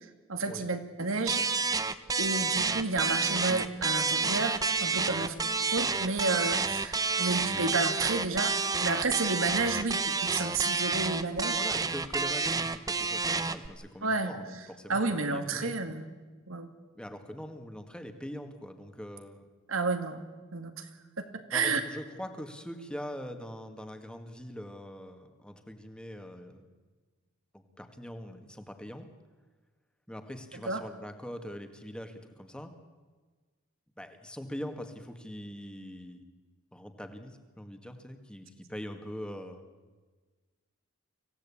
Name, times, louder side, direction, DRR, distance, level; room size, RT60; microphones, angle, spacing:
voice 1, 0.3-1.4 2.2-5.3 5.7-8.5 8.8-11.6 14.0-14.4 14.9-16.0 16.5-16.7 19.7-20.2 20.5-20.9 21.2-21.3 21.5-21.8 30.7-30.8, right 3 dB, 85° right, 7 dB, 2.3 m, -31 dB
sound 1, 1.3-13.7, right 4 dB, 20° right, 0.7 m, -29 dB
voice 2, 11.4-15.8 16.9-19.5 21.5-26.7 27.5-29.1 30.1-32.7 34.0-36.2 36.7-39.7, equal, 5° left, 6 dB, 1.8 m, -42 dB
25.0 x 16.5 x 8.6 m, 1.4 s
head